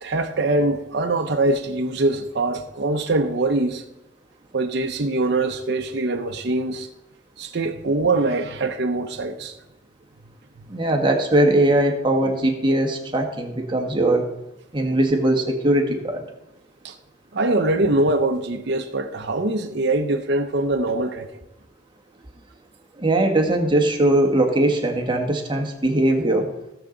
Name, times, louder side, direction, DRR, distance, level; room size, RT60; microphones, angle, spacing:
voice 1, 0.0-3.8 4.5-6.9 7.4-9.6 16.8-16.9 17.3-21.3, right 2 dB, 60° right, 0.8 m, -23 dB
voice 2, 10.7-14.2 14.7-16.2 23.0-26.5, right 1 dB, 25° right, 1.4 m, -20 dB
17.0 x 7.1 x 3.9 m
head